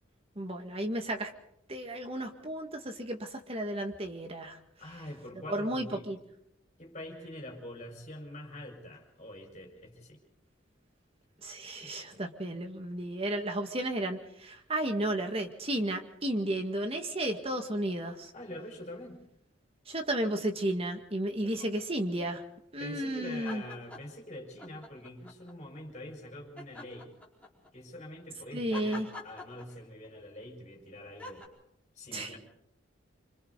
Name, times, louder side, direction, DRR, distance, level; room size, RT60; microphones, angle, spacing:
voice 1, 0.4-1.3 1.7-4.6 5.5-6.2 11.4-18.3 19.9-22.4 22.7-23.6 28.5-29.1 32.1-32.4, right 1 dB, 30° right, 4 dB, 2.0 m, -33 dB
voice 2, 4.8-6.1 6.8-10.2 18.3-19.2 21.3-21.8 22.8-27.1 27.7-31.5 32.0-32.4, left 1 dB, 35° left, 0 dB, 5.2 m, -45 dB
sound 1, 23.3-24.2 24.6-25.6 26.6-27.7 28.7-30.1 31.2-31.5, left 2 dB, 5° left, 4.5 m, -45 dB
26.5 x 25.5 x 4.1 m, 0.76 s
head